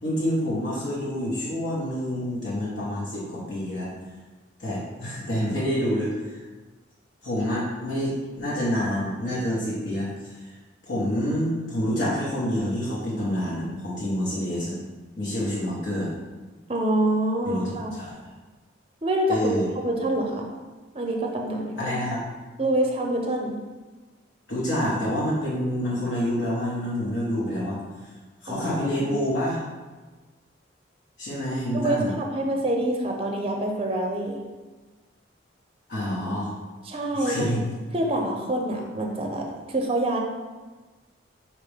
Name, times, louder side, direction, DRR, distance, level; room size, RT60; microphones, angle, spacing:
voice 1, 0.0-3.9 4.6-6.4 7.2-10.4 10.8-14.8 15.2-16.1 17.5-18.2 19.3-19.7 21.8-22.2 24.5-27.8 28.4-29.6 31.2-32.1 35.9-36.5 37.1-37.6, equal, 65° left, -7 dB, 1.0 m, -27 dB
voice 2, 16.7-17.9 19.0-19.5 19.8-20.5 20.9-21.8 22.6-23.6 28.5-29.2 31.7-34.4 36.8-37.5 37.9-40.2, right 1 dB, 30° right, 1 dB, 0.5 m, -26 dB
4.9 x 3.0 x 3.4 m, 1.3 s
head